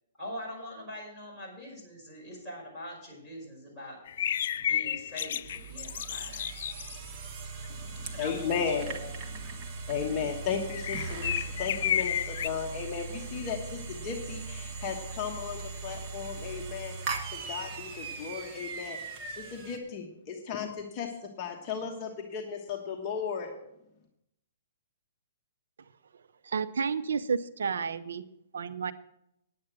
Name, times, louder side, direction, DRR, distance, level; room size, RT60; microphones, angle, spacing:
voice 1, 0.2-4.0 4.6-6.5 8.1-8.5 8.8-9.5, left 1 dB, ahead, -6 dB, 5.3 m, -43 dB
sound 1, 4.1-7.0 10.7-12.5, left 10 dB, 60° left, 0.3 m, -31 dB
sound 2, 5.4-19.8, right 4 dB, 30° right, 1.2 m, -39 dB
voice 2, 7.7-9.2 9.5-17.0 17.3-19.0 19.3-23.5, left 6 dB, 30° left, 1 dB, 1.2 m, -35 dB
voice 3, 26.4-28.2 28.5-28.9, right 6 dB, 85° right, 13 dB, 0.6 m, -31 dB
9.9 x 8.6 x 6.2 m, 0.81 s
hypercardioid pair, 155°, 0 cm